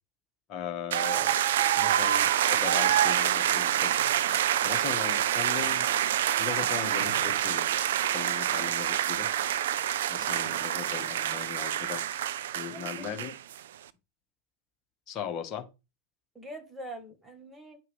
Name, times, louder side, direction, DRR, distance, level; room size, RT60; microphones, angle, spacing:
voice 1, 0.5-1.4 1.8-4.0 4.6-5.9 6.4-7.8 8.1-9.3 10.1-12.0 12.5-13.3 15.1-15.6, left 8 dB, 30° left, 1.5 m, -38 dB
sound 1, 0.9-13.6, right 11 dB, 60° right, 0.5 m, -27 dB
voice 2, 1.8-2.2 12.7-13.3 16.4-17.8, right 1 dB, 10° right, 1.9 m, -45 dB
9.8 x 5.6 x 3.6 m
figure-of-eight pair, 90°, 0 cm